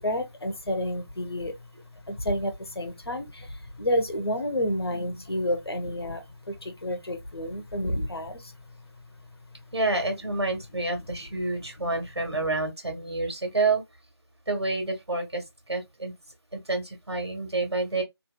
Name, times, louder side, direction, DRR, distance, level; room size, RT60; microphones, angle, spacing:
voice 1, 0.0-1.7 2.1-8.5 11.8-12.0 12.3-12.4, left 1 dB, 70° left, 1.0 m, -30 dB
voice 2, 4.9-5.2 9.7-13.8 14.5-16.1 16.5-18.0, right 3 dB, 75° right, 1.7 m, -29 dB
3.0 x 2.9 x 2.2 m
figure-of-eight pair, 165°, 14 cm